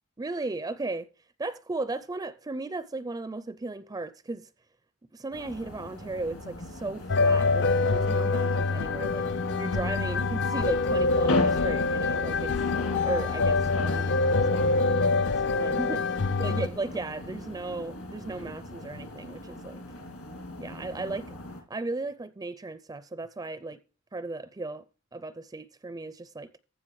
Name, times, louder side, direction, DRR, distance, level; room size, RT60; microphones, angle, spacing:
voice 1, 0.2-1.1 1.4-4.5 5.1-9.3 9.6-12.5 13.0-16.0 16.4-19.8 20.6-21.4 21.7-23.8 24.1-24.8 25.1-26.5, right 3 dB, 15° right, 0.4 m, -36 dB
sound 1, 5.3-21.6, left 1 dB, 70° left, 2.8 m, -37 dB
sound 2, 7.1-16.7, left 3 dB, 55° left, 0.5 m, -25 dB
15.0 x 5.9 x 4.7 m
head